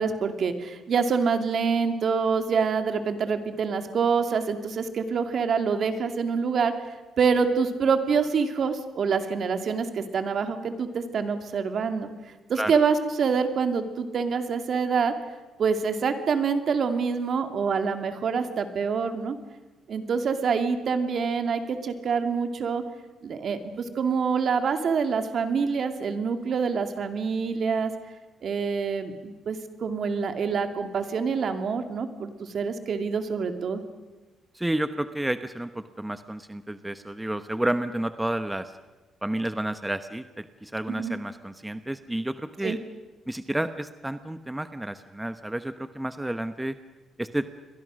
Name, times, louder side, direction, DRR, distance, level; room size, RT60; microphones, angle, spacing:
voice 1, 0.0-6.7 7.2-12.1 12.5-15.1 15.6-19.4 19.9-22.8 23.2-27.9 28.4-33.8 40.9-41.1 42.6-42.8, right 5 dB, 55° right, 7 dB, 2.5 m, -26 dB
voice 2, 34.5-38.7 39.2-42.8 43.3-46.8 47.2-47.5, right 1 dB, 10° right, 10 dB, 1.0 m, -31 dB
29.0 x 22.5 x 6.4 m, 1.2 s
cardioid pair, 90°, 0 cm